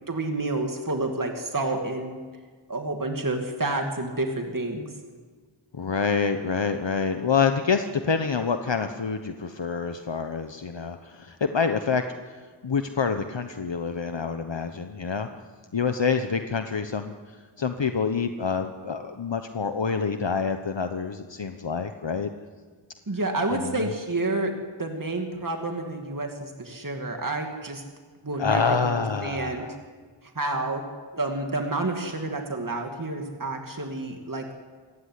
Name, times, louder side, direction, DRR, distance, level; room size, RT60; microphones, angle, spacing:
voice 1, 0.1-2.2 2.7-4.9 23.1-24.5 24.8-27.8 28.2-28.9 29.2-29.7 30.4-30.8 31.1-34.5, right 2 dB, 40° right, 3 dB, 2.6 m, -29 dB
voice 2, 5.7-12.4 12.6-15.3 15.7-17.2 17.6-22.3 23.5-23.9 28.4-29.8, left 5 dB, 65° left, 7 dB, 1.2 m, -27 dB
27.0 x 15.0 x 9.7 m, 1.5 s
wide cardioid pair, 55°, 48 cm